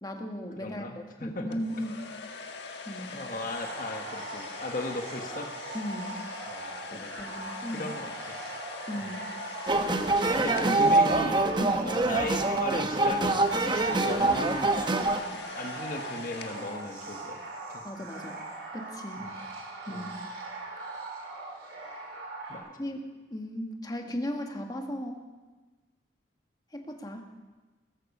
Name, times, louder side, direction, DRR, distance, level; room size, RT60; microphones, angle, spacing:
voice 1, 0.0-2.1 2.8-3.2 5.7-6.2 6.9-7.9 8.9-9.2 10.4-10.8 11.6-11.9 17.8-18.4 18.7-19.3 19.9-20.1 22.8-25.2 26.7-27.3, equal, 20° left, 3 dB, 1.5 m, -36 dB
voice 2, 0.6-0.9 1.2-1.4 3.0-5.5 6.5-7.4 7.7-8.4 8.9-9.1 10.4-11.4 11.8-14.7 15.3-17.4 17.7-17.8 19.2-19.3 19.9-20.1 22.5-22.7, left 2 dB, 50° left, 3 dB, 1.3 m, -37 dB
sound 1, 1.5-11.6 12.7-17.4, left 4 dB, 70° left, 1.4 m, -43 dB
sound 2, 3.4-22.6, right 2 dB, 75° right, 4.7 m, -41 dB
sound 3, 9.7-15.2, right 2 dB, 25° right, 0.9 m, -25 dB
19.0 x 14.0 x 5.4 m, 1.2 s
head